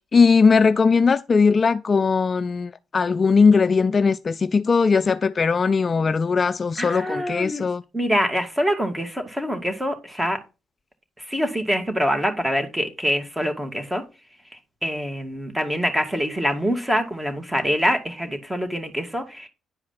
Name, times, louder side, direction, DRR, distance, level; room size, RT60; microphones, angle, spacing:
voice 1, 0.1-7.8, left 5 dB, 35° left, 0.5 m, -19 dB
voice 2, 6.8-7.6 7.9-10.4 11.2-14.0 14.8-19.5, equal, 10° right, 2.4 m, -25 dB
10.5 x 4.9 x 5.7 m
cardioid pair, 90°, 0 cm